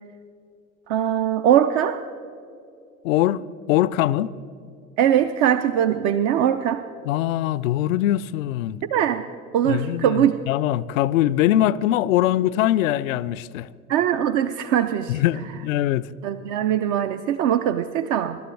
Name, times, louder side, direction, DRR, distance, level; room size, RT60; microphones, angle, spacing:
voice 1, 0.9-2.0 5.0-6.8 8.9-9.2 9.5-10.4 13.9-15.2 16.2-18.4, right 10 dB, 40° right, 0.6 m, -21 dB
voice 2, 3.0-4.3 7.1-8.8 9.7-13.7 15.1-16.1, left 13 dB, 60° left, 0.5 m, -22 dB
24.5 x 12.5 x 3.3 m
figure-of-eight pair, 80°, 46 cm